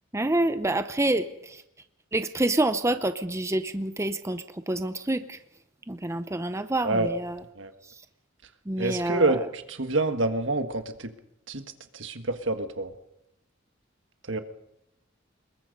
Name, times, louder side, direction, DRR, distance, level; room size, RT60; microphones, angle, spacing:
voice 1, 0.1-1.6 2.1-5.4 5.9-7.4 8.7-9.4, right 2 dB, 15° right, 10 dB, 0.7 m, -27 dB
voice 2, 8.8-11.1 11.5-11.6 11.9-12.9 14.3-14.4, right 2 dB, 70° right, 8 dB, 1.6 m, -27 dB
26.5 x 21.5 x 5.3 m, 0.84 s
head